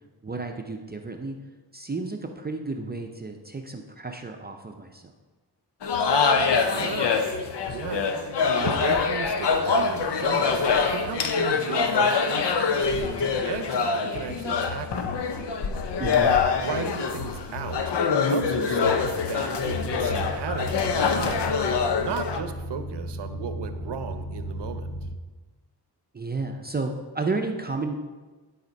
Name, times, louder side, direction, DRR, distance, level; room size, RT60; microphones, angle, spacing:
voice 1, 0.2-1.4 1.7-5.1 16.0-16.3 26.1-27.9, right 3 dB, 25° right, 3 dB, 0.5 m, -32 dB
sound 1, 5.8-22.4, left 5 dB, 85° left, 0.8 m, -24 dB
voice 2, 6.4-7.2 7.7-15.5 16.1-17.9 18.3-19.6 19.9-21.5 22.0-24.9, right 6 dB, 85° right, 8 dB, 0.8 m, -36 dB
sound 2, 19.6-25.2, equal, 15° left, 0.7 m, -35 dB
11.0 x 4.2 x 5.2 m, 1.3 s
wide cardioid pair, 135°, 40 cm